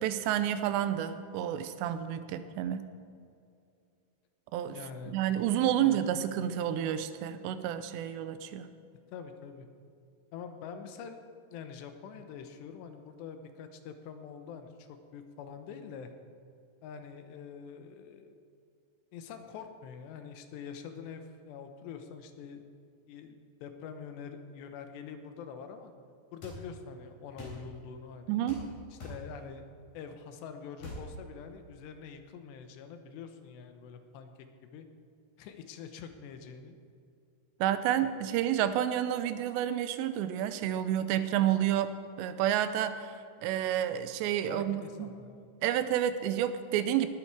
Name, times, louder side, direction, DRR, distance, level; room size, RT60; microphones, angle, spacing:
voice 1, 0.0-2.9 4.5-4.8 5.1-8.7 28.3-28.6 37.6-43.1 43.4-45.1 45.6-47.1, right 11 dB, 90° right, 11 dB, 2.9 m, -30 dB
voice 2, 4.7-5.2 5.8-6.0 9.1-9.7 10.3-11.2 11.5-16.1 16.8-18.3 19.1-22.6 23.1-25.9 26.3-28.4 28.9-29.7 29.9-34.9 35.4-36.8 44.5-45.5, left 6 dB, 85° left, 7 dB, 3.1 m, -45 dB
sound 1, 26.4-26.6 27.4-27.6 28.5-28.7 29.0-29.2 30.8-31.1, left 1 dB, 50° left, 5.2 m, -43 dB
19.5 x 8.6 x 4.8 m, 2.5 s
omnidirectional pair, 4.9 m